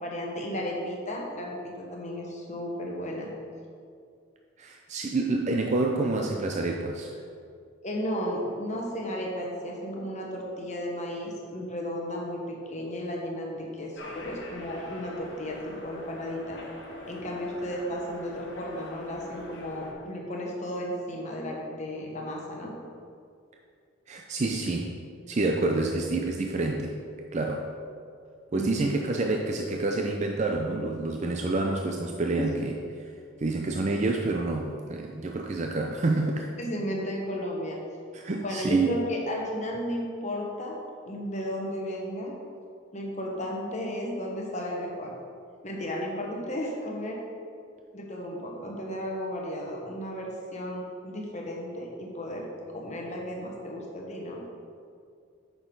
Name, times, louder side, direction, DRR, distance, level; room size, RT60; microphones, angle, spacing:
voice 1, 0.0-3.3 7.8-16.6 17.1-22.7 28.5-28.9 32.3-32.6 36.6-37.8 38.3-40.8 41.0-42.3 42.9-45.1 45.6-47.2 47.9-52.5 52.7-54.4, equal, 35° left, -1 dB, 1.1 m, -34 dB
voice 2, 4.6-7.2 24.1-27.0 27.3-27.7 28.5-32.7 33.0-33.1 33.4-36.5 38.1-39.0, right 2 dB, 35° right, 1 dB, 0.4 m, -28 dB
sound 1, 13.9-19.9, left 1 dB, 55° left, 1.3 m, -44 dB
8.6 x 6.3 x 3.9 m, 2.3 s
head